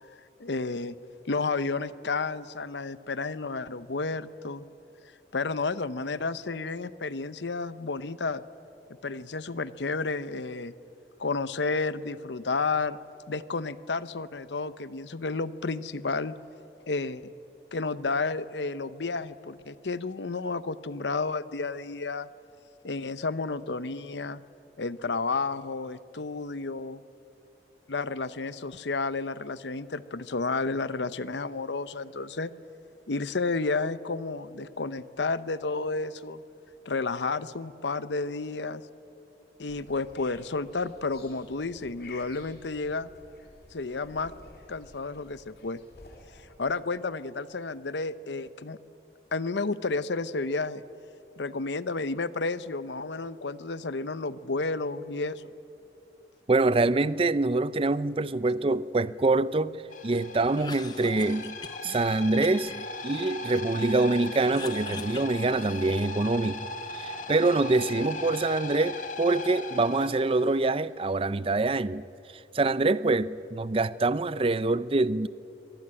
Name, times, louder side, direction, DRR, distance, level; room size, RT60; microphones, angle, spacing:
voice 1, 0.4-1.0 1.3-4.6 5.3-8.4 9.0-10.7 11.2-13.0 13.3-16.3 16.9-17.3 17.7-22.3 22.8-24.4 24.8-27.0 27.9-32.5 33.1-36.4 36.9-38.8 39.6-43.1 43.7-44.3 44.7-45.8 46.6-48.8 49.3-50.8 51.4-55.5, left 3 dB, 80° left, 0.8 m, -31 dB
sound 1, 39.7-46.5, left 2 dB, 60° left, 3.8 m, -52 dB
voice 2, 56.5-59.8 60.0-61.6 61.8-62.7 63.0-66.7 66.9-72.0 72.5-75.3, right 2 dB, 30° right, 0.5 m, -25 dB
sound 2, 59.9-70.7, left 2 dB, 45° left, 2.0 m, -38 dB
Cough, 60.4-62.0 62.4-63.9 64.2-66.1, left 3 dB, 25° left, 0.8 m, -43 dB
23.5 x 18.5 x 9.9 m
head